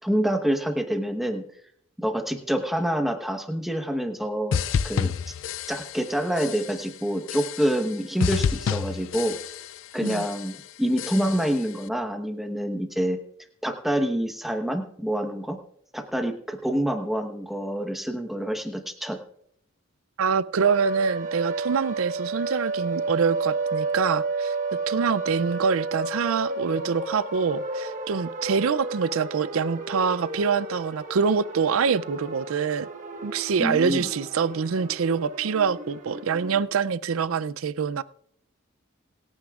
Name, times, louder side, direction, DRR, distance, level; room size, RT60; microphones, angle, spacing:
voice 1, 0.0-1.4 2.0-5.3 5.7-9.4 9.9-13.2 13.6-15.6 15.9-19.2 33.6-34.1, equal, ahead, 4 dB, 1.1 m, -27 dB
sound 1, 4.5-6.1 6.4-6.9 7.3-7.9 8.2-9.8 10.0-10.6 11.0-11.6, left 7 dB, 65° left, 0.4 m, -29 dB
voice 2, 20.2-24.5 24.9-32.9 33.2-38.0, right 6 dB, 75° right, 16 dB, 0.4 m, -25 dB
sound 2, 20.6-36.6, right 3 dB, 35° right, 1.3 m, -32 dB
27.5 x 9.4 x 2.4 m, 0.69 s
head